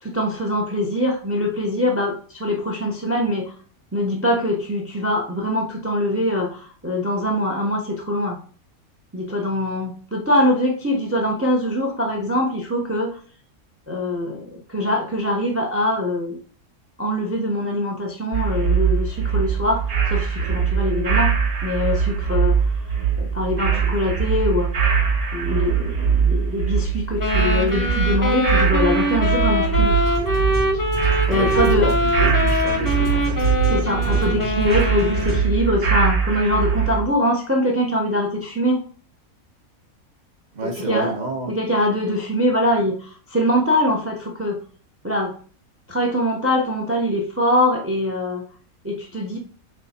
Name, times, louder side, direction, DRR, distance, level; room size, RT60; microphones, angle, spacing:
voice 1, 0.0-3.5 3.9-8.4 9.1-13.2 13.9-16.4 17.0-21.3 21.6-22.6 23.2-24.7 25.3-30.2 31.3-31.9 33.7-38.8 40.6-41.2 41.5-44.6 45.0-45.3 45.9-48.4 48.8-49.4, left 1 dB, 10° right, 2 dB, 0.8 m, -23 dB
sound 1, 18.3-37.0, right 6 dB, 75° right, 1.6 m, -22 dB
voice 2, 23.4-23.8 31.3-33.5 40.5-41.6, right 2 dB, 35° right, 2 dB, 1.2 m, -30 dB
sound 2, 27.2-35.6, left 1 dB, 15° left, 0.9 m, -23 dB
sound 3, 29.2-35.4, right 4 dB, 60° right, 3.8 m, -34 dB
6.6 x 4.0 x 4.4 m, 0.43 s
omnidirectional pair, 1.5 m